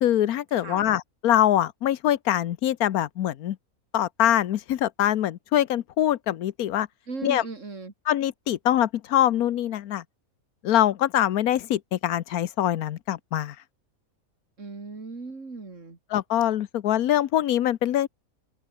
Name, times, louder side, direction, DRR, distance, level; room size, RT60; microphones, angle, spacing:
voice 1, 0.0-3.6 3.9-6.9 7.2-7.4 8.1-10.0 10.6-13.6 16.1-18.1, left 12 dB, 90° left, 1.3 m, -24 dB
voice 2, 0.6-0.9 7.1-7.9 14.6-16.0, right 3 dB, 55° right, 3.4 m, -37 dB
open air
omnidirectional pair, 1.5 m